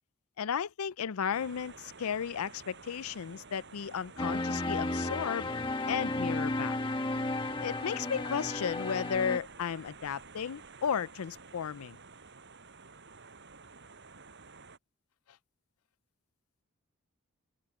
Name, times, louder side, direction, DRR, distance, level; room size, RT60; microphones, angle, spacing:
voice 1, 0.4-5.5 5.9-6.8 7.6-12.0, left 7 dB, 75° left, 0.5 m, -34 dB
sound 1, 1.3-14.8, right 4 dB, 55° right, 7.3 m, -51 dB
sound 2, 4.2-9.4, left 2 dB, 25° left, 1.5 m, -33 dB
open air
head